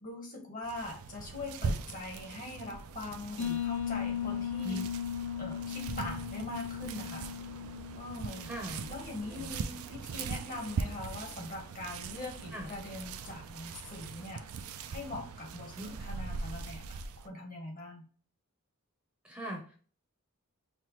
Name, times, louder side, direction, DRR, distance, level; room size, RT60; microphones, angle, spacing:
voice 1, 0.0-4.8 5.4-7.3 8.0-8.5 8.9-14.5 14.9-18.0, left 2 dB, 40° left, 1 dB, 1.3 m, -42 dB
sound 1, 0.6-17.3, right 5 dB, 70° right, 0.4 m, -41 dB
sound 2, 3.4-8.9, left 9 dB, 65° left, 1.2 m, -37 dB
voice 2, 8.4-8.9 9.2-9.7 12.5-12.7 15.8-16.0 19.2-19.7, equal, 5° right, -1 dB, 0.7 m, -40 dB
5.8 x 2.1 x 3.1 m, 0.41 s
head